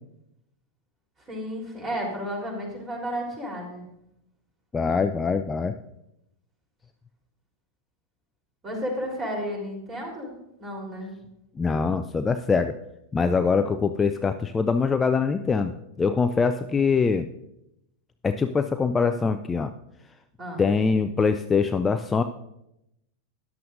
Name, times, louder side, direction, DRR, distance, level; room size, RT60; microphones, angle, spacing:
voice 1, 1.3-3.8 8.6-10.3 10.6-11.1 20.4-20.7, equal, 25° right, -1 dB, 3.6 m, -32 dB
voice 2, 4.7-5.7 11.6-12.7 13.1-17.3 18.2-19.7 20.6-22.2, left 5 dB, 15° left, 8 dB, 0.4 m, -23 dB
13.5 x 10.5 x 2.6 m, 0.82 s
figure-of-eight pair, 90°, 0 cm